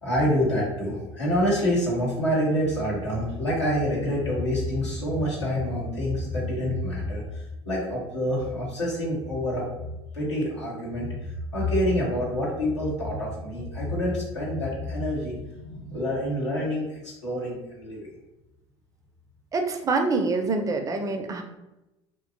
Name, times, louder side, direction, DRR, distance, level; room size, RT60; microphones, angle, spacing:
voice 1, 0.0-18.1, equal, 90° left, -7 dB, 0.9 m, -27 dB
voice 2, 19.5-21.4, right 3 dB, 25° right, 5 dB, 0.4 m, -25 dB
2.7 x 2.2 x 2.5 m, 0.96 s
figure-of-eight pair, 65°, 14 cm